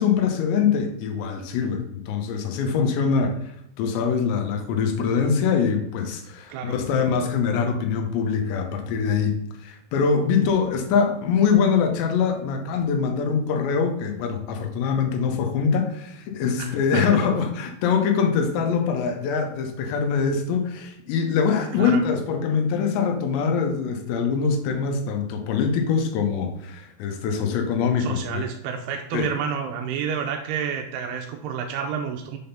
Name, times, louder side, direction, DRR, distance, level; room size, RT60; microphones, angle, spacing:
voice 1, 0.0-3.4 3.8-28.4 29.1-29.3, left 6 dB, 80° left, 4 dB, 2.9 m, -23 dB
voice 2, 16.6-17.2 21.7-22.0 28.0-32.4, right 7 dB, 85° right, 3 dB, 2.3 m, -30 dB
6.8 x 3.5 x 5.5 m, 0.77 s
omnidirectional pair, 5.3 m